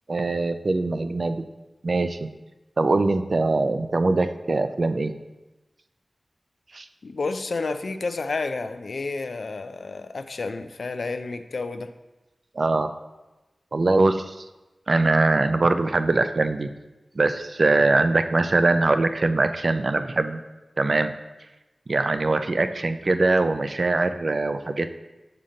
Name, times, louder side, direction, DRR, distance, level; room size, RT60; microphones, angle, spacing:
voice 1, 0.1-1.4 1.8-2.3 2.8-5.1 6.7-6.9 12.6-12.9 13.7-14.5 14.9-16.7 17.2-20.4 20.8-21.1 21.9-24.9, right 2 dB, 60° right, 9 dB, 0.3 m, -22 dB
voice 2, 7.0-11.9, left 3 dB, 85° left, 9 dB, 0.3 m, -30 dB
5.7 x 5.0 x 3.8 m, 1.1 s
wide cardioid pair, 65°, 0 cm